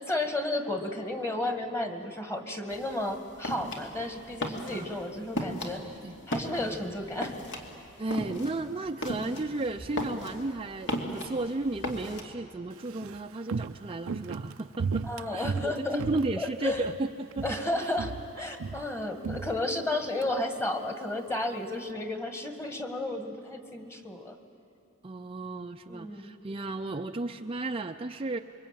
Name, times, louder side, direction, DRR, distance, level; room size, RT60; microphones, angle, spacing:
voice 1, 0.0-5.8 6.3-7.4 15.0-16.0 16.4-16.9 17.4-24.4 25.9-26.3, left 1 dB, 15° left, 6 dB, 1.9 m, -33 dB
sound 1, 2.7-12.2, equal, 60° left, 2.7 m, -36 dB
voice 2, 8.0-15.0 15.3-17.4 17.8-17.9 25.0-28.4, right 2 dB, 25° right, 5 dB, 0.5 m, -34 dB
Walk footsteps, 12.7-17.0 17.3-17.7 18.0-20.3 20.6-20.7, right 5 dB, 75° right, 0.5 m, -35 dB
27.0 x 23.5 x 9.1 m, 2.7 s
head